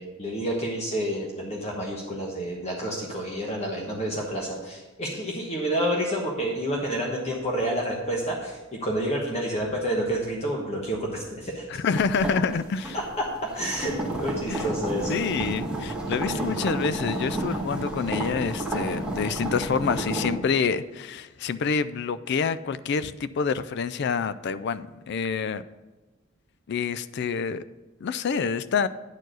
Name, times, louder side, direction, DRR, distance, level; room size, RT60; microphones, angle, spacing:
voice 1, 0.0-11.8 12.9-13.3 13.5-15.2 16.3-16.5, equal, 35° left, -2 dB, 1.2 m, -29 dB
voice 2, 11.8-13.0 14.5-14.7 15.1-25.6 26.7-27.6 28.0-28.9, left 5 dB, 60° left, 14 dB, 0.4 m, -27 dB
sound 1, 12.0-20.3, right 2 dB, 5° right, 1.8 m, -31 dB
9.6 x 4.6 x 6.1 m, 1.1 s
head